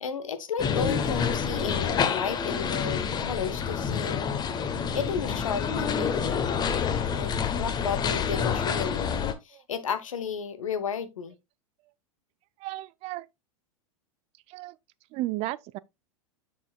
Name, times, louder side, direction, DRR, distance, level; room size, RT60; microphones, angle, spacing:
voice 1, 0.0-4.3 4.9-6.3 7.1-9.2 9.4-11.3, left 7 dB, 75° left, 0.9 m, -33 dB
sound 1, 0.6-9.3, left 6 dB, 25° left, 0.9 m, -28 dB
voice 2, 12.6-13.3 14.5-14.8 15.1-15.8, right 17 dB, 35° right, 0.4 m, -34 dB
7.0 x 6.6 x 2.2 m
figure-of-eight pair, 90°, 17 cm